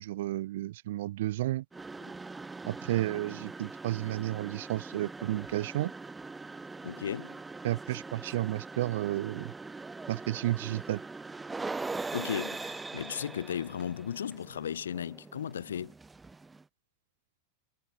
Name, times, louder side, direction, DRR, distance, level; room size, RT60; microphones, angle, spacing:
voice 1, 0.0-1.6 2.6-5.9 7.6-9.5 10.1-11.0, right 15 dB, 60° right, 1.4 m, -32 dB
sound 1, 1.7-16.6, right 3 dB, 10° right, 6.2 m, -42 dB
voice 2, 6.8-7.4 12.1-15.9, left 8 dB, 70° left, 1.6 m, -35 dB
figure-of-eight pair, 90°, 0 cm